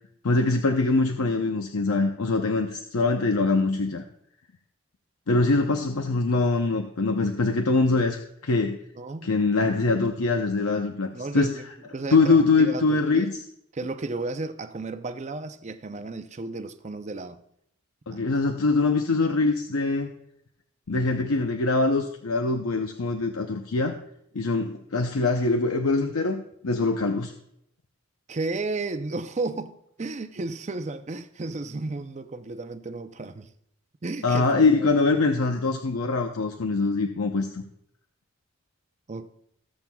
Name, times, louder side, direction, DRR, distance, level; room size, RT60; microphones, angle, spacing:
voice 1, 0.2-4.0 5.3-8.8 9.2-11.5 12.1-13.3 18.1-20.1 20.9-24.0 24.3-27.3 34.2-37.6, left 3 dB, 85° left, 0.7 m, -23 dB
voice 2, 8.9-9.3 11.1-11.6 11.9-13.3 13.7-17.4 18.1-18.2 28.3-33.5 34.0-34.9 39.1-39.3, right 3 dB, 35° right, 0.5 m, -33 dB
19.5 x 7.3 x 2.3 m
head